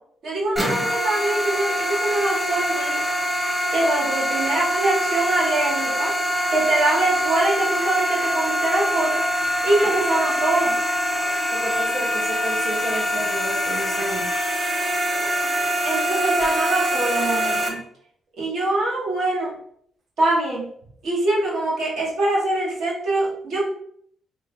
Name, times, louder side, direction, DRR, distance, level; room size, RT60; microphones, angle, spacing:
voice 1, 0.2-3.1 3.7-6.2 6.5-9.3 9.6-10.8 15.8-17.8 18.4-19.5 20.2-20.7 21.0-23.6, right 2 dB, 70° right, -5 dB, 1.3 m, -23 dB
sound 1, 0.6-17.7, equal, 10° right, 0.8 m, -24 dB
voice 2, 11.5-14.3 14.9-15.3, right 1 dB, 40° right, -2 dB, 0.9 m, -32 dB
3.1 x 2.1 x 3.2 m, 0.64 s
cardioid pair, 90°, 0 cm